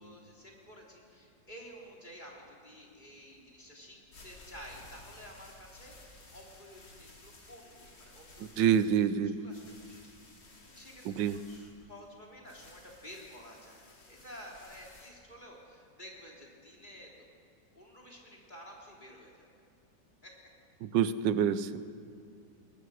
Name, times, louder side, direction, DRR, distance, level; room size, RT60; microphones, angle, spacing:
voice 1, 0.0-4.0 4.2-8.9 9.2-11.0 11.3-17.3 17.7-19.5 20.2-20.3, equal, 25° left, -2 dB, 3.6 m, -51 dB
sound 1, 3.9-15.1, left 2 dB, 90° left, 3.5 m, -56 dB
voice 2, 8.4-9.4 11.0-11.4 20.8-21.9, right 8 dB, 90° right, 14 dB, 1.4 m, -27 dB
21.0 x 20.0 x 6.4 m, 2.4 s
omnidirectional pair, 1.9 m